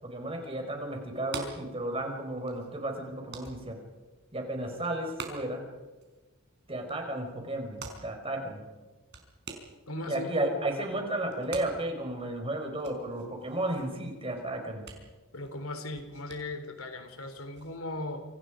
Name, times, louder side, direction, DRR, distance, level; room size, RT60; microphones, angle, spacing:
voice 1, 0.0-3.8 4.3-5.6 6.7-8.6 10.0-14.9, right 1 dB, 25° right, 3 dB, 5.1 m, -33 dB
sound 1, 1.0-17.8, right 4 dB, 55° right, 4.9 m, -49 dB
voice 2, 9.9-10.3 15.3-18.2, left 2 dB, 85° left, 7 dB, 3.5 m, -38 dB
28.0 x 26.5 x 5.1 m, 1.3 s
head